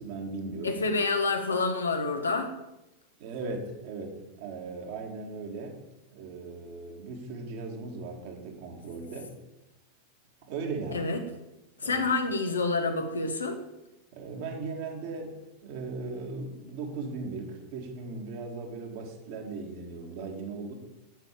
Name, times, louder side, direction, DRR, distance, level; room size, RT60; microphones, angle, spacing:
voice 1, 0.0-0.8 3.2-5.8 6.1-9.3 10.5-11.1 11.8-12.0 14.1-20.7, right 3 dB, 50° right, 2 dB, 2.3 m, -38 dB
voice 2, 0.6-2.5 10.9-11.2 11.8-13.6, left 3 dB, 75° left, 5 dB, 1.3 m, -28 dB
8.0 x 7.2 x 7.5 m, 0.95 s
figure-of-eight pair, 90°, 0 cm